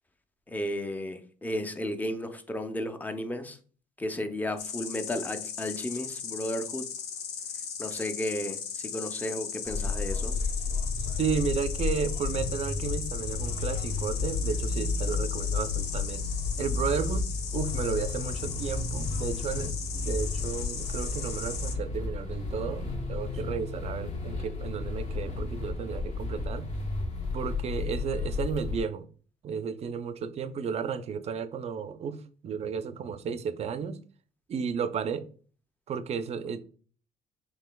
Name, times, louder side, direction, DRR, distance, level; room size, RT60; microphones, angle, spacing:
voice 1, 0.5-3.6 4.0-6.8 7.8-10.4, left 1 dB, 10° left, 0.5 m, -33 dB
Insect, 4.6-21.7, left 7 dB, 75° left, 0.7 m, -38 dB
sound 1, 9.6-28.8, left 4 dB, 45° left, 1.0 m, -32 dB
voice 2, 11.2-16.3 16.6-26.7 27.3-29.1 29.4-34.0 34.5-35.3 35.9-36.6, right 6 dB, 40° right, 0.4 m, -33 dB
5.5 x 3.2 x 2.2 m
cardioid pair, 110°, 17 cm